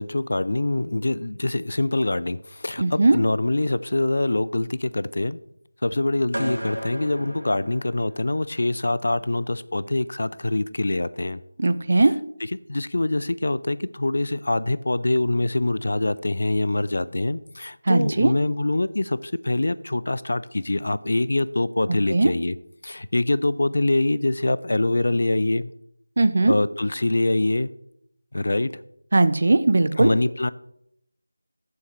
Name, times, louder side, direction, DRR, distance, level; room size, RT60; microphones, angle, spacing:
voice 1, 0.0-5.4 5.8-11.4 12.7-22.6 22.8-25.7 26.5-27.7 28.3-28.7 30.0-30.5, left 2 dB, 50° left, 17 dB, 0.4 m, -24 dB
voice 2, 2.8-3.2 11.6-12.1 17.9-18.3 22.1-22.3 26.2-26.5 29.1-30.1, right 2 dB, 40° right, 13 dB, 0.5 m, -18 dB
sound 1, 6.3-8.4, equal, 85° right, 2.4 m, -33 dB
13.5 x 7.1 x 3.1 m, 0.75 s
figure-of-eight pair, 165°, 0 cm